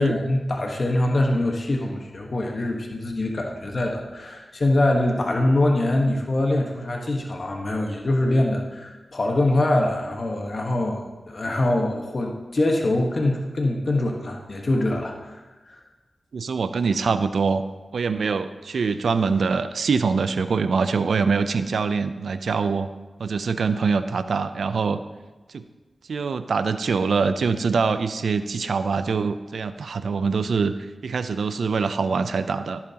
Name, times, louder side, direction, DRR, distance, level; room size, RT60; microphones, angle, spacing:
voice 1, 0.0-15.3 15.6-15.8, left 1 dB, 55° left, 1 dB, 1.2 m, -23 dB
voice 2, 16.3-17.6 17.9-22.9 23.2-25.0 25.5-25.6 26.1-32.8, right 5 dB, 85° right, 11 dB, 0.4 m, -24 dB
15.0 x 8.7 x 2.9 m, 1.2 s
cardioid pair, 50°, 0 cm